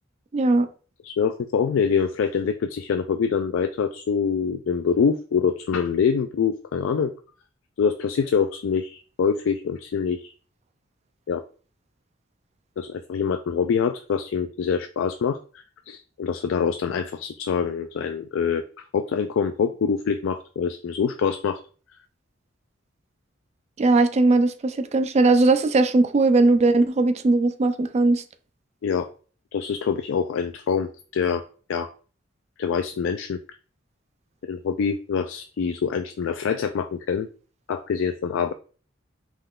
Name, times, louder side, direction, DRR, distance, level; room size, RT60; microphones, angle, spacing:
voice 1, 0.3-0.7 23.8-28.2, right 3 dB, 35° right, 0.4 m, -19 dB
voice 2, 1.0-7.1 7.8-10.3 11.3-11.4 12.8-15.4 15.9-21.6 28.8-29.1 29.5-31.4 31.7-31.9 32.6-33.4 34.4-37.3 37.7-38.5, left 6 dB, 80° left, 0.4 m, -25 dB
5.3 x 3.7 x 2.3 m
head